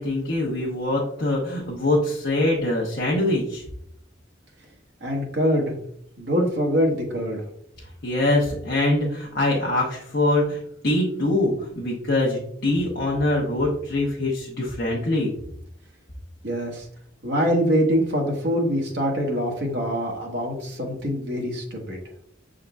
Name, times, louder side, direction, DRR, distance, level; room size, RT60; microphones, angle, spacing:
voice 1, 0.0-3.6 8.0-15.3, left 1 dB, 55° left, -3 dB, 0.8 m, -23 dB
voice 2, 5.0-5.7 6.2-7.4 16.4-16.8 17.2-22.0, equal, 60° right, 0 dB, 1.2 m, -24 dB
6.2 x 3.7 x 2.3 m, 0.69 s
head